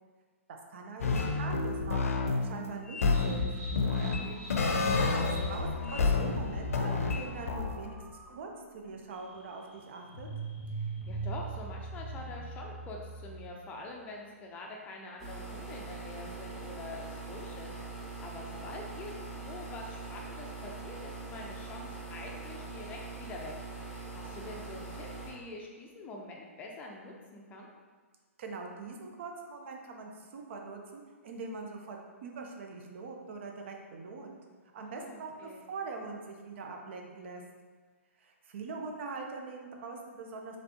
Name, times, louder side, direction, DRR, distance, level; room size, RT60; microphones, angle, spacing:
voice 1, 0.5-3.5 5.2-10.3 28.4-34.4 34.7-37.4 38.2-40.6, right 4 dB, 55° right, 2 dB, 0.6 m, -43 dB
sound 1, 1.0-7.8, left 4 dB, 75° left, 0.5 m, -29 dB
sound 2, 3.1-13.7, right 3 dB, 75° right, 1.5 m, -43 dB
voice 2, 3.8-4.9 10.7-27.7 34.8-35.6, left 2 dB, 20° left, -1 dB, 0.5 m, -46 dB
sound 3, 15.2-25.3, right 3 dB, ahead, 1.0 m, -43 dB
4.2 x 3.2 x 2.7 m, 1.5 s
hypercardioid pair, 135°, 8 cm